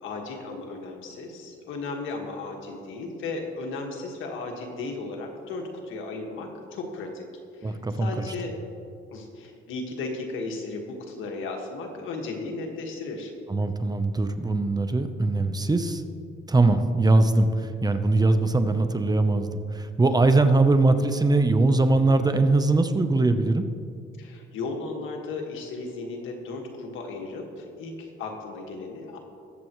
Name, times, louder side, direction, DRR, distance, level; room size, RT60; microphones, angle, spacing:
voice 1, 0.0-7.2 7.5-8.6 9.1-13.3 24.2-29.2, left 3 dB, 80° left, 2 dB, 1.8 m, -35 dB
voice 2, 7.6-8.3 13.5-16.0 16.5-23.7, right 2 dB, 20° right, 9 dB, 0.8 m, -21 dB
21.0 x 7.7 x 3.1 m, 2.4 s
cardioid pair, 90°, 20 cm